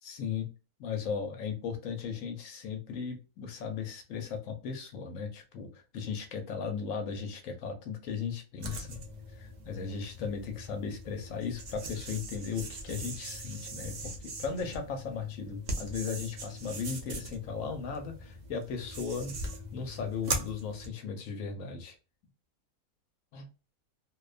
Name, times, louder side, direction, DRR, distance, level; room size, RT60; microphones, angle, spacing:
voice 1, 0.0-0.5 0.8-9.0 9.4-19.4 19.7-22.0 23.3-23.5, left 6 dB, 70° left, 5 dB, 0.9 m, -37 dB
sound 1, 8.6-20.9, right 1 dB, 80° right, 0.4 m, -40 dB
2.5 x 2.2 x 2.3 m, 0.33 s
omnidirectional pair, 1.5 m